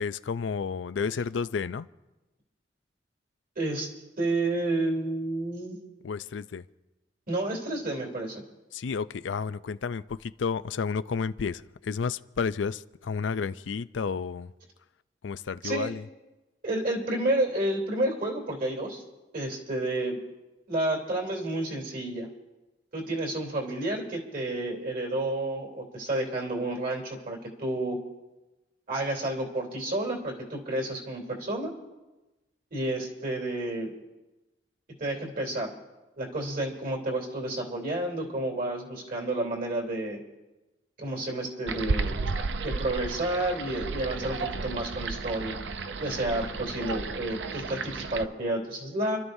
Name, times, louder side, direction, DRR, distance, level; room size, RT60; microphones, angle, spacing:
voice 1, 0.0-1.9 6.0-6.6 8.7-14.5 15.2-16.1, left 5 dB, 85° left, 14 dB, 0.4 m, -31 dB
voice 2, 3.5-3.9 4.2-5.8 7.3-8.4 15.6-15.9 16.6-19.0 19.3-20.2 20.7-22.3 22.9-28.0 28.9-31.7 32.7-33.9 35.0-35.7 36.2-40.2 41.0-42.2 42.6-45.6 46.0-49.2, right 1 dB, 50° right, -1 dB, 3.3 m, -30 dB
sound 1, 41.7-48.2, right 4 dB, 75° right, 0.6 m, -33 dB
30.0 x 12.5 x 2.7 m, 1.1 s
head